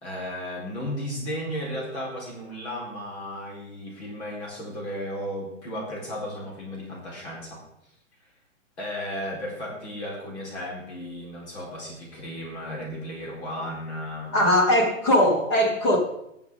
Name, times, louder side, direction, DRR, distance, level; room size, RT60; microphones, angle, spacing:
voice 1, 0.0-7.6 8.8-14.4, equal, 60° left, -3 dB, 4.1 m, -34 dB
voice 2, 14.3-16.0, left 1 dB, 20° left, 1 dB, 1.7 m, -20 dB
17.0 x 7.1 x 3.7 m, 0.81 s
hypercardioid pair, 175°, 38 cm